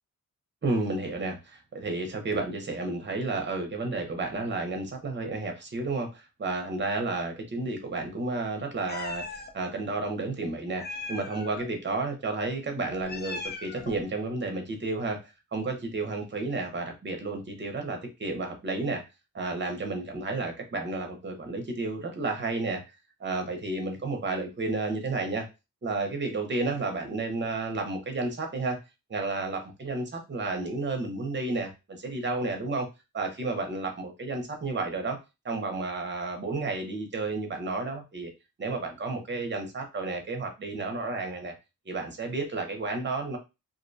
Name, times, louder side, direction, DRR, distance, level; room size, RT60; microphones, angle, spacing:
voice 1, 0.6-15.2 15.5-19.0 19.3-22.8 23.2-25.5 25.8-28.8 29.1-31.7 32.0-32.9 33.1-35.2 35.4-38.3 38.6-41.5 41.9-43.4, right 3 dB, 35° right, 4 dB, 0.7 m, -31 dB
Meow, 8.9-9.5 10.8-11.7 12.9-14.0, left 3 dB, 30° left, 0.4 m, -38 dB
2.5 x 2.1 x 2.6 m, 0.26 s
wide cardioid pair, 95°, 34 cm